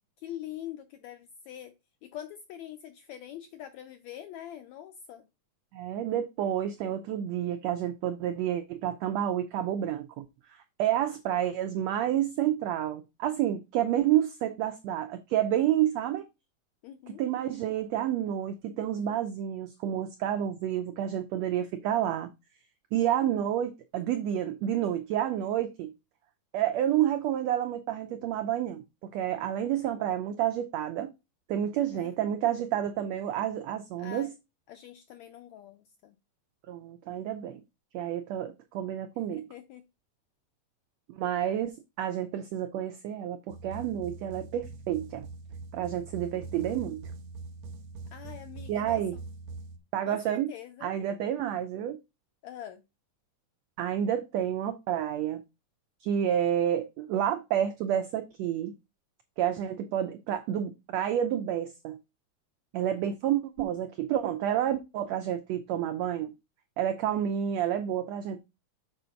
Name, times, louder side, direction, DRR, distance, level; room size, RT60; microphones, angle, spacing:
voice 1, 0.0-1.7 2.0-5.3 16.8-17.2 31.9-32.2 34.0-34.3 34.7-36.2 39.3-39.8 48.1-49.2 50.1-50.9 52.4-52.8, left 11 dB, 80° left, 1.6 m, -44 dB
voice 2, 5.7-10.2 10.8-16.3 17.2-22.3 22.9-25.9 26.5-28.8 29.1-31.1 31.5-34.3 36.7-37.6 37.9-39.5 41.1-45.3 45.7-47.0 48.7-49.1 49.9-50.5 50.8-52.0 53.8-55.4 56.0-58.7 59.4-62.0 62.7-66.3 66.8-68.4, right 10 dB, 85° right, 1.5 m, -29 dB
sound 1, 43.5-49.8, right 3 dB, 70° right, 1.8 m, -43 dB
7.0 x 3.9 x 5.6 m
omnidirectional pair, 3.8 m